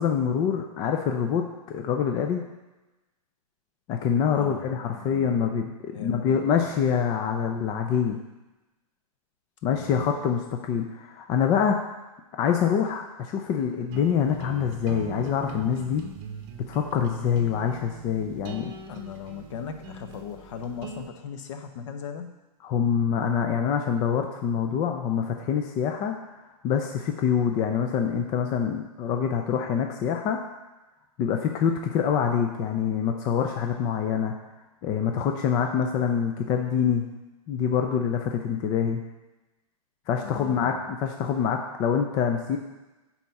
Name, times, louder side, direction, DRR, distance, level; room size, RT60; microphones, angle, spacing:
voice 1, 0.0-2.4 3.9-8.2 9.6-11.8 12.4-16.0 16.7-18.7 22.6-26.1 26.6-30.4 31.2-34.3 34.8-37.1 37.5-39.0 40.1-42.6, left 7 dB, 20° left, 4 dB, 0.4 m, -25 dB
voice 2, 4.3-5.3 5.9-6.2 6.5-6.7 9.7-10.3 18.9-22.3 40.2-40.9, left 7 dB, 50° left, 7 dB, 1.0 m, -38 dB
sound 1, 13.9-21.1, right 5 dB, 35° right, 0.8 m, -42 dB
10.0 x 4.2 x 5.8 m, 1.1 s
hypercardioid pair, 155°, 20 cm